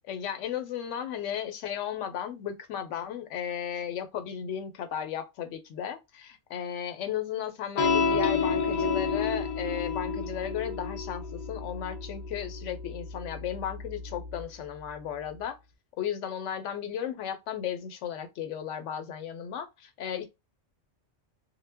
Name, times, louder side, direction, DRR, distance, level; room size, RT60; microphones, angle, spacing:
voice 1, 0.1-15.6 16.0-20.2, left 9 dB, 80° left, 0.9 m, -35 dB
sound 1, 7.8-14.4, left 4 dB, 55° left, 0.4 m, -30 dB
2.1 x 2.0 x 3.3 m
omnidirectional pair, 1.2 m